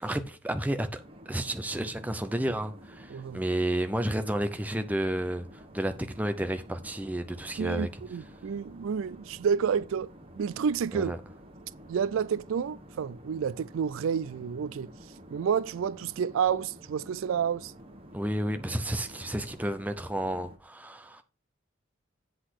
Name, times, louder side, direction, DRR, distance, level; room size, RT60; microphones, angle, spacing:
voice 1, 0.0-1.0 1.3-7.9 10.9-11.2 18.1-21.2, right 1 dB, 10° right, 0.6 m, -31 dB
sound 1, 1.0-20.6, equal, 25° right, 1.1 m, -50 dB
voice 2, 7.6-10.1 10.4-11.1 11.9-14.9 15.3-17.7, right 7 dB, 80° right, 0.3 m, -29 dB
8.2 x 3.9 x 6.4 m
head